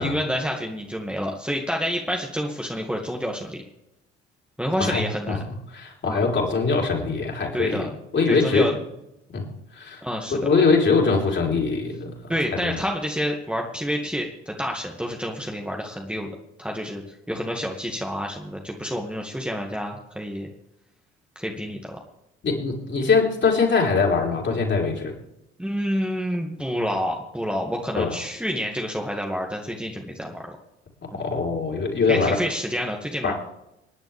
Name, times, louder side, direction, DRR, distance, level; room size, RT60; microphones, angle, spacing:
voice 1, 0.0-3.6 4.6-5.4 6.0-6.2 7.5-7.9 8.3-8.7 10.0-10.4 12.3-16.3 16.6-17.0 17.3-20.5 21.4-22.0 25.6-30.6 31.1-31.2 32.1-33.3, equal, 5° right, 0 dB, 2.0 m, -28 dB
voice 2, 4.8-7.9 8.1-8.7 9.3-9.5 9.8-10.0 10.4-12.1 12.6-12.7 22.4-25.1 28.0-28.1 31.2-32.4 33.2-33.3, left 4 dB, 35° left, -1 dB, 4.1 m, -22 dB
26.5 x 10.5 x 3.5 m, 0.86 s
figure-of-eight pair, 50°, 33 cm